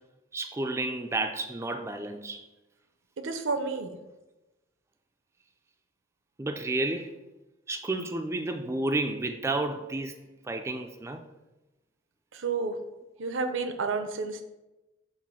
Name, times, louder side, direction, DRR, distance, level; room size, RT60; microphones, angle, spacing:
voice 1, 0.3-2.4 6.4-7.1 7.7-10.2 10.4-11.2, right 2 dB, 15° right, 6 dB, 0.3 m, -31 dB
voice 2, 3.2-4.0 12.3-12.8 13.2-14.4, right 4 dB, 80° right, 8 dB, 0.7 m, -30 dB
7.3 x 2.5 x 5.4 m, 1.0 s
head